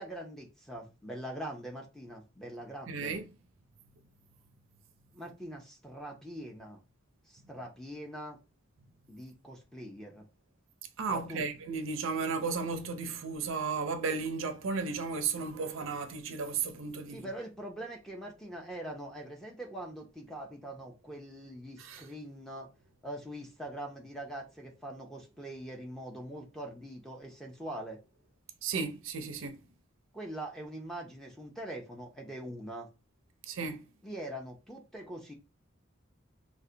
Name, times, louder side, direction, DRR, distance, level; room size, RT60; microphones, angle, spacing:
voice 1, 0.0-3.2 5.1-6.8 7.3-8.4 9.1-10.3 11.1-11.4 17.1-22.7 23.0-28.0 30.1-32.9 34.0-35.3, right 1 dB, ahead, 0.6 m, -43 dB
voice 2, 2.9-3.2 11.0-17.3 21.8-22.0 28.6-29.6 33.5-33.8, right 5 dB, 75° right, 0.5 m, -34 dB
3.7 x 2.2 x 2.7 m
head